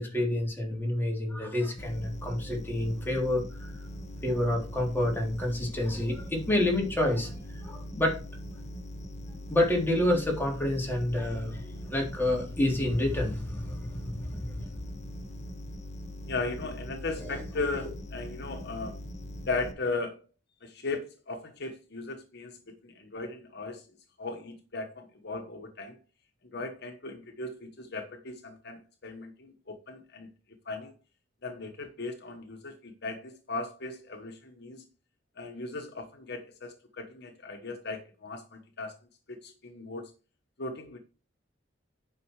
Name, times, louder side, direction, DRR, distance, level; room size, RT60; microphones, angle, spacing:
voice 1, 0.0-3.7 4.2-8.2 9.5-14.7 17.2-17.4, left 1 dB, 10° left, 3.5 m, -29 dB
sound 1, 1.8-19.7, equal, 40° left, 1.5 m, -41 dB
voice 2, 16.3-19.0 19.5-20.2 20.6-23.9 24.2-26.0 26.4-30.3 30.6-30.9 31.4-34.8 35.4-38.9 39.3-40.1 40.6-41.0, left 3 dB, 60° left, 1.3 m, -37 dB
11.0 x 5.5 x 4.8 m
head